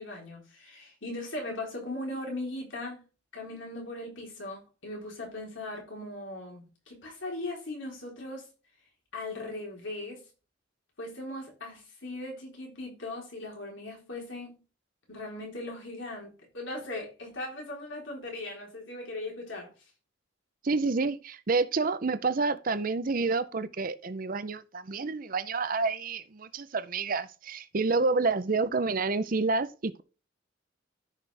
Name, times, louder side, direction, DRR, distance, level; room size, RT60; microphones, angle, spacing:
voice 1, 0.0-3.0 3.3-8.5 9.1-10.2 11.0-14.5 15.1-19.7, left 2 dB, 75° left, 3.8 m, -39 dB
voice 2, 20.6-30.0, right 3 dB, 45° right, 0.6 m, -29 dB
13.5 x 5.9 x 3.4 m
head